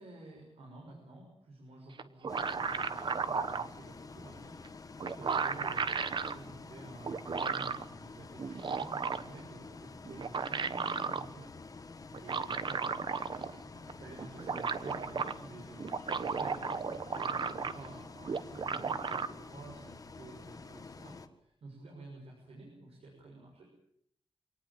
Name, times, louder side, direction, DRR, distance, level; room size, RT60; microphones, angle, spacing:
voice 1, 0.0-11.5 12.2-12.9 13.7-16.8 17.1-23.7, right 2 dB, 80° right, 0 dB, 6.7 m, -51 dB
sound 1, 2.0-3.7 4.6-4.7 5.0-6.3 7.0-7.8 8.4-9.4 10.1-11.2 12.1-13.6 13.9-14.0 14.2-15.3 15.8-17.9 18.2-19.3, right 5 dB, 50° right, 1.2 m, -34 dB
Bus, 2.3-21.3, left 3 dB, 35° left, 1.6 m, -49 dB
25.5 x 19.0 x 8.8 m, 0.70 s
wide cardioid pair, 175°, 10 cm